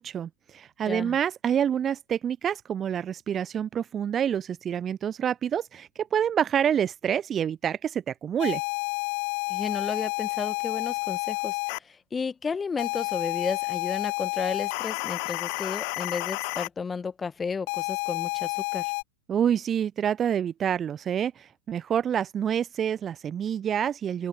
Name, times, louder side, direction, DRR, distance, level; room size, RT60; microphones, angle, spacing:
voice 1, 0.0-8.6 19.3-24.3, right 9 dB, 25° right, 0.6 m, -27 dB
voice 2, 0.9-1.2 9.5-18.9, left 5 dB, 15° left, 1.7 m, -33 dB
sound 1, 8.4-11.8 12.8-16.7 17.7-19.0, left 32 dB, 45° left, 0.7 m, -30 dB
open air
figure-of-eight pair, 90°, 0 cm